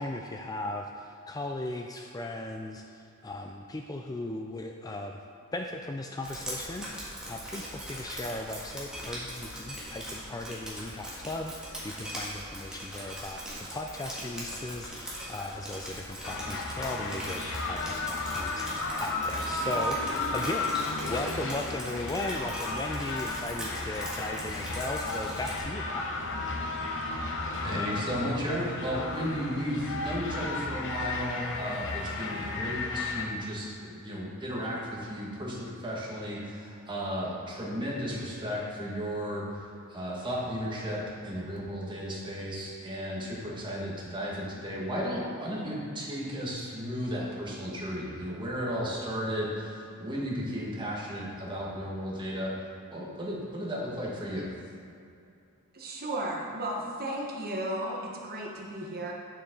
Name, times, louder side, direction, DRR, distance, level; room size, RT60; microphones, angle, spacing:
voice 1, 0.0-5.2 5.5-26.0, left 2 dB, 15° left, 3 dB, 0.4 m, -37 dB
Drip, 6.2-25.6, equal, 5° right, 1.7 m, -41 dB
sound 1, 16.2-33.3, left 3 dB, 60° left, 0.9 m, -34 dB
voice 2, 27.6-52.5 52.9-54.5, equal, 20° right, -5 dB, 1.7 m, -34 dB
voice 3, 55.7-59.1, right 1 dB, 45° right, -2 dB, 1.2 m, -34 dB
9.5 x 6.9 x 3.8 m, 2.6 s
head